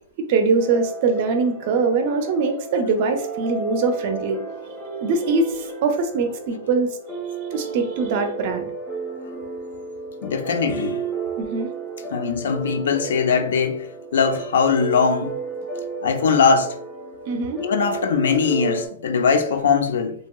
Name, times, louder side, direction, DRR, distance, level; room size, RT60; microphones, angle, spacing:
voice 1, 0.3-4.4 5.0-7.0 7.5-8.7 11.4-11.7 17.3-17.6, right 4 dB, 40° right, 0.4 m, -22 dB
sound 1, 0.6-18.9, right 4 dB, 10° left, 0.6 m, -33 dB
voice 2, 10.2-11.1 12.1-15.4 16.0-16.8 17.6-20.1, left 5 dB, 75° left, 0.4 m, -21 dB
2.8 x 2.7 x 2.2 m
hypercardioid pair, 165°, 0 cm